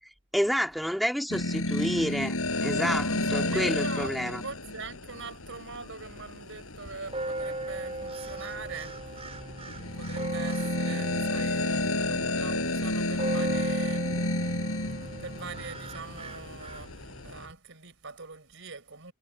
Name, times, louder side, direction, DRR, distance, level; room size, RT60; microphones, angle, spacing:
voice 1, 0.3-2.4 2.6-4.4, equal, ahead, 2.1 m, -29 dB
sound 1, 1.3-17.5, left 2 dB, 80° left, 5.1 m, -32 dB
voice 2, 3.1-9.2 9.9-14.1 15.2-19.1, right 4 dB, 60° right, 5.3 m, -43 dB
sound 2, 7.1-17.5, right 2 dB, 30° right, 4.9 m, -38 dB
head